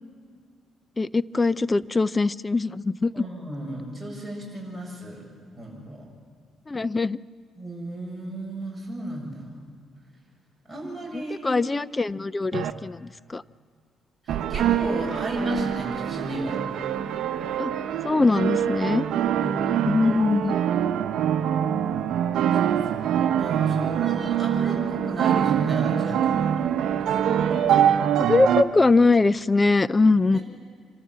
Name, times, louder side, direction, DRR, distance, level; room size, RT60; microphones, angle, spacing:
voice 1, 1.0-3.2 6.7-7.2 11.1-13.4 17.6-17.7 18.0-19.1 19.9-20.5 27.7-27.8 28.2-30.4, left 3 dB, 25° left, 19 dB, 0.4 m, -22 dB
voice 2, 3.1-5.2 5.6-6.1 7.6-9.6 10.7-11.7 14.2-16.6 19.4-19.6 22.5-23.1 23.4-26.8 30.3-30.4, right 1 dB, ahead, -1 dB, 7.5 m, -35 dB
sound 1, 12.5-12.7 14.3-28.6, right 9 dB, 75° right, 0.8 m, -24 dB
26.0 x 14.0 x 7.5 m, 2.1 s
cardioid pair, 90°, 0 cm